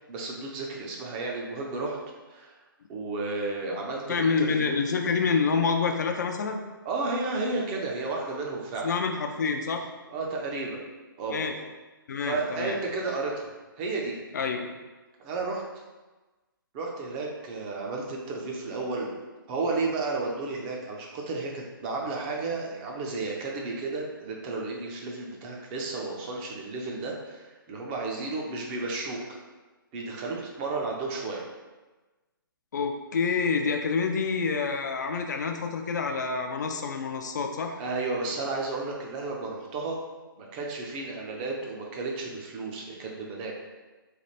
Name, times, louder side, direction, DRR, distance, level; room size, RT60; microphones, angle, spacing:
voice 1, 0.1-2.0 2.3-2.6 2.9-4.8 6.8-8.9 10.1-10.8 11.2-11.4 12.2-13.5 13.8-14.2 15.2-15.6 16.7-19.1 19.5-29.2 29.9-31.4 37.8-40.0 40.4-43.5, right 3 dB, 25° right, -1 dB, 0.5 m, -32 dB
voice 2, 4.1-6.6 8.8-9.9 11.3-11.5 12.1-12.8 14.3-14.7 32.7-37.8, left 5 dB, 50° left, 4 dB, 0.4 m, -27 dB
3.2 x 2.4 x 4.1 m, 1.2 s
figure-of-eight pair, 135°, 12 cm